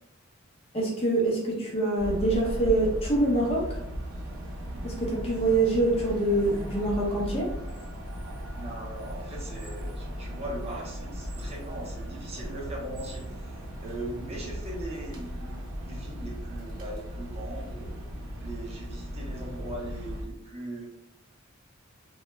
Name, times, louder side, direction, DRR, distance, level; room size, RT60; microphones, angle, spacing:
voice 1, 0.7-3.6 4.8-7.5, right 2 dB, 30° left, -3 dB, 0.7 m, -25 dB
sound 1, 2.0-20.3, equal, 75° right, 0.6 m, -37 dB
voice 2, 8.5-18.0 18.4-20.9, right 1 dB, 30° right, -4 dB, 0.6 m, -40 dB
2.2 x 2.1 x 3.0 m, 0.84 s
head